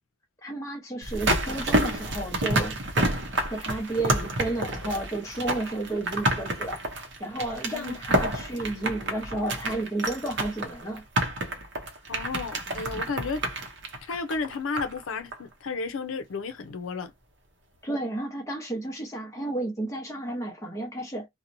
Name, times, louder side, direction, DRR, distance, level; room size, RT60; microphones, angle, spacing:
voice 1, 0.4-3.2 3.5-6.8 7.2-11.0 17.8-21.3, right 2 dB, 15° left, 0.8 m, -32 dB
sound 1, 1.0-15.0 15.3-15.4, right 1 dB, 55° right, 0.7 m, -29 dB
voice 2, 12.1-13.4 14.1-17.1, left 4 dB, 80° left, 0.5 m, -33 dB
2.8 x 2.1 x 2.5 m
head